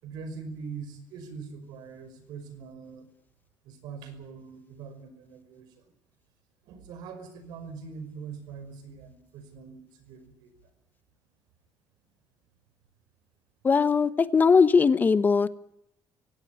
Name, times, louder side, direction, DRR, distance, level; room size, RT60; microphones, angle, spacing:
voice 1, 0.0-3.1 3.6-5.7 6.7-10.5, right 5 dB, 85° right, 10 dB, 5.5 m, -42 dB
voice 2, 13.6-15.5, left 5 dB, 25° left, 14 dB, 1.0 m, -20 dB
24.0 x 17.5 x 8.5 m, 0.78 s
cardioid pair, 140°, 7 cm